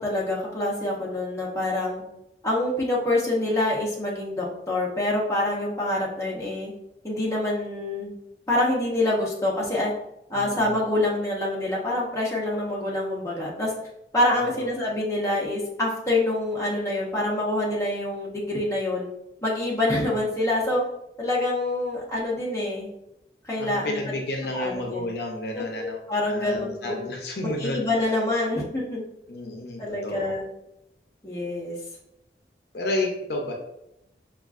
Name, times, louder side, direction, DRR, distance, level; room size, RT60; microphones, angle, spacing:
voice 1, 0.0-2.0 2.4-6.7 7.0-8.1 8.5-9.9 10.3-13.7 14.1-19.1 19.4-20.8 21.2-22.9 23.4-24.0 24.5-25.1 25.5-27.0 27.4-29.0 29.8-30.4 31.2-31.8, left 1 dB, 15° left, -5 dB, 0.8 m, -26 dB
voice 2, 10.3-10.8 14.3-14.7 23.6-28.1 29.3-30.3 32.7-33.5, left 2 dB, 70° left, 1 dB, 0.6 m, -31 dB
5.2 x 2.4 x 2.4 m, 0.83 s
head